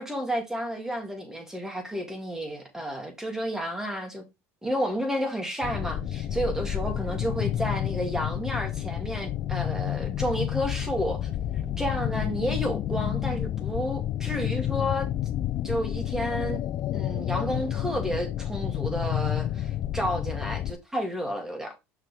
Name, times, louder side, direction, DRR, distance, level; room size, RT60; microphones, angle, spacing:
voice 1, 0.0-4.2 4.6-11.3 11.8-15.1 15.6-16.6 16.9-21.7, equal, 5° right, 2.9 m, -31 dB
sound 1, 5.6-20.7, left 12 dB, 50° left, 0.6 m, -30 dB
6.1 x 6.1 x 3.6 m
hypercardioid pair, 85°, 8 cm